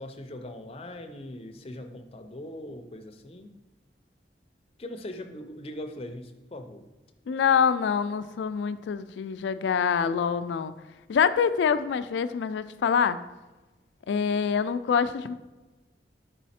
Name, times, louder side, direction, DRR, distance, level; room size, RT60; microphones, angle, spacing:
voice 1, 0.0-3.5 4.8-6.9, left 1 dB, 35° left, 5 dB, 0.5 m, -40 dB
voice 2, 7.3-10.7 11.1-13.2 14.1-15.3, left 6 dB, 90° left, 13 dB, 0.3 m, -25 dB
5.4 x 4.1 x 4.2 m, 1.2 s
head